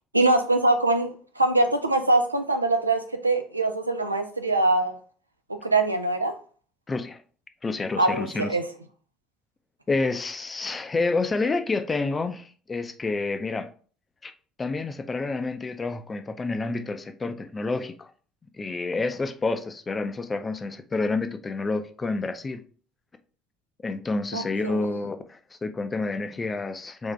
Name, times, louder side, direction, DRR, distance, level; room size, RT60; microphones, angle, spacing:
voice 1, 0.1-4.9 5.6-6.3 8.0-8.7 24.3-24.8, right 2 dB, 85° right, 0.3 m, -23 dB
voice 2, 6.9-7.2 7.6-8.5 9.9-13.7 14.2-14.3 14.6-18.1 18.6-22.6 23.8-27.1, left 3 dB, 25° left, 0.5 m, -29 dB
3.6 x 3.5 x 3.2 m
figure-of-eight pair, 55°, 0 cm